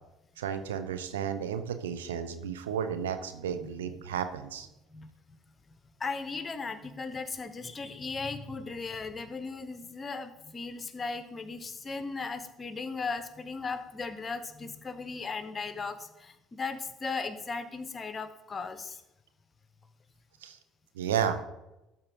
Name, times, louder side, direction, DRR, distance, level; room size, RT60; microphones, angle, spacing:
voice 1, 0.4-4.7 20.4-20.6 21.0-21.4, right 8 dB, 80° right, 9 dB, 0.7 m, -32 dB
voice 2, 6.0-19.0, left 4 dB, 30° left, 11 dB, 1.0 m, -37 dB
12.5 x 4.4 x 5.3 m, 0.94 s
hypercardioid pair, 60°, 0 cm